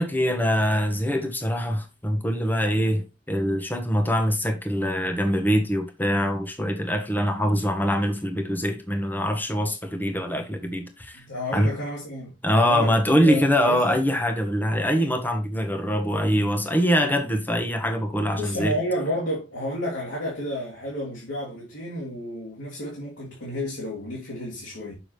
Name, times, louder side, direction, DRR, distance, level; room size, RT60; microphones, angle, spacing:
voice 1, 0.0-11.2 11.5-11.7 12.4-18.8, equal, 10° left, 1.2 m, -23 dB
voice 2, 11.2-14.0 18.3-24.9, equal, 75° left, 2.7 m, -31 dB
6.8 x 6.0 x 3.2 m
head